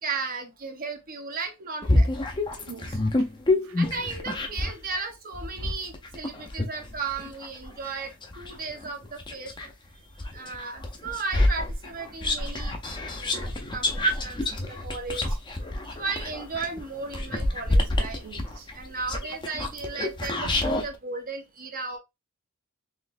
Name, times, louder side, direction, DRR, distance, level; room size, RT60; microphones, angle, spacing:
voice 1, 0.0-2.1 3.8-9.6 10.3-12.8 13.1-13.9 14.2-15.4 16.0-18.2 18.7-22.0, right 4 dB, 40° right, 1.0 m, -35 dB
sound 1, 1.8-4.8 5.3-9.7 10.2-20.9, left 1 dB, 20° left, 0.7 m, -27 dB
voice 2, 2.5-3.3 3.6-3.8 9.6-9.7 13.4-13.5 13.9-14.0 15.1-15.2 18.2-18.7 20.4-20.6, right 6 dB, 65° right, 0.4 m, -46 dB
4.1 x 3.2 x 2.6 m
head